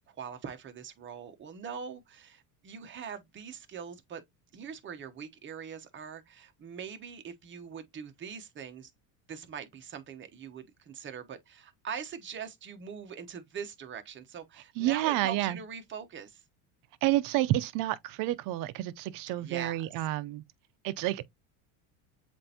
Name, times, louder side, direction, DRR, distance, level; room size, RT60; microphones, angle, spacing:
voice 1, 0.0-4.2 4.5-8.9 9.3-16.4 19.4-19.9, right 7 dB, 30° right, 0.9 m, -42 dB
voice 2, 14.8-15.6 17.0-20.4 20.8-21.2, right 15 dB, 55° right, 0.6 m, -29 dB
7.4 x 2.6 x 2.7 m
cardioid pair, 135°, 41 cm